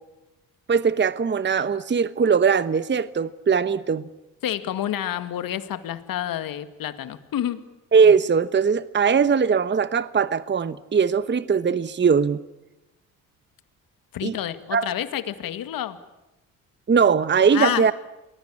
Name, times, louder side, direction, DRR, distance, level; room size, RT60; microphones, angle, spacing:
voice 1, 0.7-4.1 7.9-12.4 14.2-14.3 14.7-14.9 16.9-17.9, right 6 dB, 30° right, 15 dB, 1.1 m, -20 dB
voice 2, 4.4-7.6 14.1-16.0 17.5-17.9, left 11 dB, 70° left, 11 dB, 2.2 m, -29 dB
29.0 x 21.0 x 8.7 m, 1.0 s
supercardioid pair, 70°, 36 cm